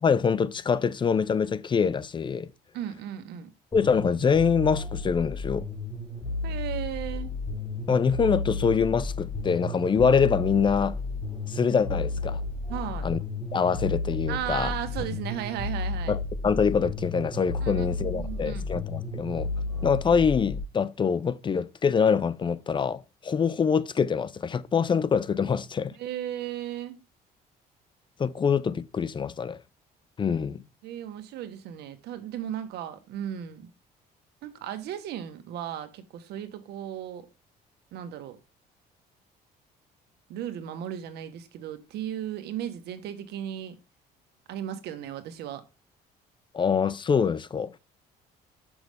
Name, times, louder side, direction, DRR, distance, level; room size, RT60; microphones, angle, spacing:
voice 1, 0.0-2.5 3.7-5.7 7.9-11.0 11.5-12.4 13.0-13.2 13.5-14.7 16.1-19.5 19.8-25.9 28.2-29.6 30.2-30.6 46.5-47.8, left 6 dB, 30° left, 0.5 m, -25 dB
voice 2, 2.7-3.5 6.4-7.3 12.7-13.1 14.3-16.2 17.6-18.7 26.0-27.0 30.8-33.7 34.4-37.3 37.9-38.4 40.3-43.7 44.5-45.6, right 10 dB, 80° right, 1.3 m, -35 dB
sound 1, 3.7-20.6, left 2 dB, 15° left, 4.0 m, -33 dB
6.4 x 6.2 x 3.4 m
cardioid pair, 110°, 17 cm